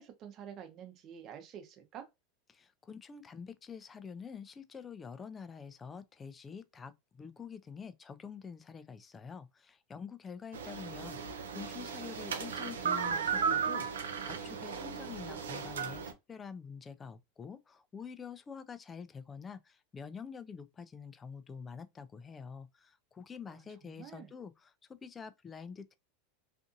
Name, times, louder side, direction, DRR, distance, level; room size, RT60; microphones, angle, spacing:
voice 1, 0.0-2.1 23.5-24.3, right 9 dB, 45° right, 0.8 m, -49 dB
voice 2, 2.5-6.9 7.2-26.0, left 6 dB, 25° left, 0.3 m, -47 dB
sound 1, 10.5-16.1, right 6 dB, 90° right, 0.5 m, -35 dB
2.6 x 2.5 x 2.5 m
hypercardioid pair, 105°, 0 cm